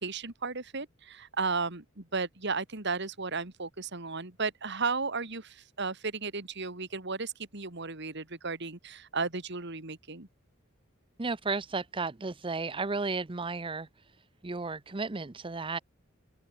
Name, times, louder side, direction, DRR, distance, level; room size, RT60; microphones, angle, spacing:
voice 1, 0.0-10.3, right 4 dB, 60° right, 2.8 m, -34 dB
voice 2, 11.2-13.9 14.4-15.8, right 3 dB, 25° right, 0.7 m, -33 dB
open air
head